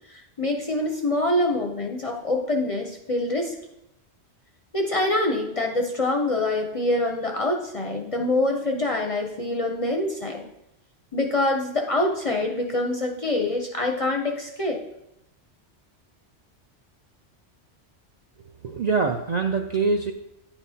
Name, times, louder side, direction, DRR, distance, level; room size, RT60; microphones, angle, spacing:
voice 1, 0.1-3.5 4.7-10.5 11.1-14.8, left 2 dB, 40° left, 2 dB, 0.5 m, -25 dB
voice 2, 18.6-20.1, right 4 dB, 60° right, 4 dB, 0.4 m, -24 dB
10.0 x 5.8 x 2.7 m, 0.87 s
omnidirectional pair, 1.2 m